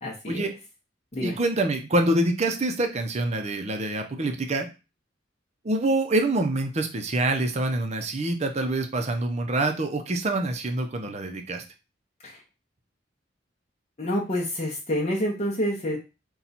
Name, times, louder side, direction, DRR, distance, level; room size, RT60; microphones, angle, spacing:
voice 1, 0.0-0.4 1.1-1.4 12.2-12.4 14.0-16.0, equal, 35° left, -3 dB, 0.8 m, -28 dB
voice 2, 1.2-4.7 5.6-11.6, right 2 dB, 35° right, 5 dB, 0.6 m, -26 dB
4.3 x 2.3 x 4.0 m, 0.29 s
head